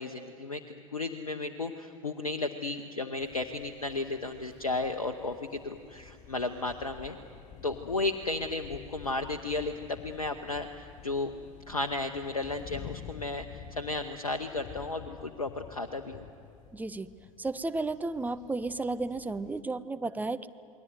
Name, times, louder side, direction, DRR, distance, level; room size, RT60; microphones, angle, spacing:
voice 1, 0.0-7.2 7.6-11.3 11.7-16.3, left 3 dB, 80° left, 6 dB, 1.0 m, -34 dB
sound 1, 3.2-19.6, left 9 dB, 45° left, 1.1 m, -50 dB
voice 2, 16.7-17.1 17.4-20.5, right 3 dB, 10° right, 12 dB, 0.7 m, -33 dB
28.5 x 21.0 x 9.5 m, 2.4 s
figure-of-eight pair, 80°, 18 cm